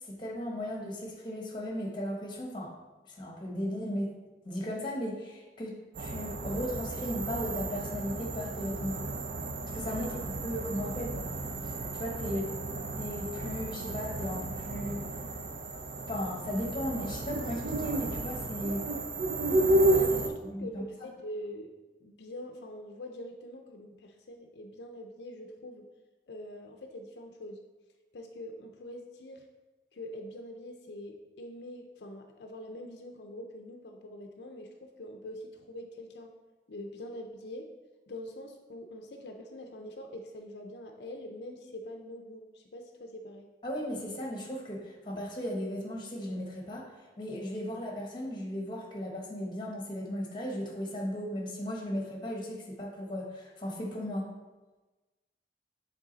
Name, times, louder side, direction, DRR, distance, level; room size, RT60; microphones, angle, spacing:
voice 1, 0.1-2.7 3.1-4.1 4.4-9.0 9.7-10.1 10.4-11.3 11.6-12.4 13.0-15.0 16.1-18.8 20.4-20.8 43.6-46.9 47.2-54.3, equal, 25° left, 0 dB, 1.1 m, -36 dB
sound 1, 5.9-20.3, right 2 dB, 55° right, 0.5 m, -32 dB
voice 2, 10.6-11.1 12.2-12.4 19.7-21.7 22.0-25.9 26.3-27.6 28.1-29.5 29.9-36.3 36.7-37.7 38.1-43.5, left 1 dB, 75° left, 4 dB, 0.5 m, -44 dB
7.3 x 3.6 x 3.9 m, 1.2 s
head